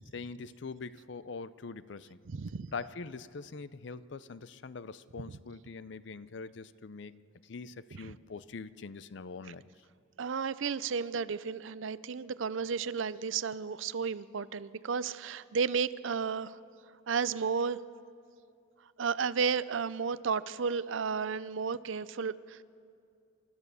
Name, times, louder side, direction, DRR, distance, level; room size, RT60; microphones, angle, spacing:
voice 1, 0.1-2.2 2.7-9.7, left 4 dB, 60° left, 16 dB, 0.5 m, -43 dB
voice 2, 2.3-2.7 10.2-16.6 17.1-17.8 19.0-22.6, right 5 dB, 70° right, 17 dB, 0.5 m, -33 dB
29.0 x 13.5 x 6.9 m, 2.5 s
head